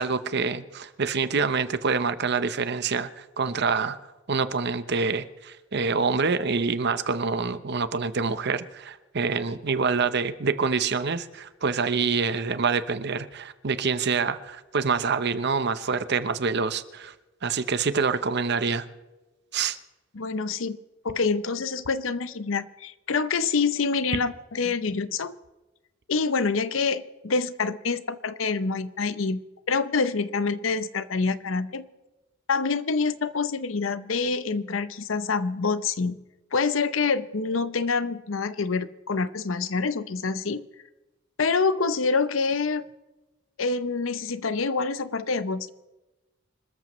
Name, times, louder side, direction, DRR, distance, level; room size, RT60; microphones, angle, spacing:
voice 1, 0.0-4.0 4.3-17.1 17.4-18.9 19.5-19.8 24.6-24.7, right 5 dB, 55° right, 12 dB, 0.8 m, -26 dB
voice 2, 20.1-20.8 21.0-25.4 26.1-29.4 29.7-31.9 32.5-36.2 36.5-40.7 41.4-42.9 43.6-45.7, left 4 dB, 75° left, 14 dB, 0.7 m, -26 dB
26.0 x 13.5 x 3.2 m, 1.1 s
head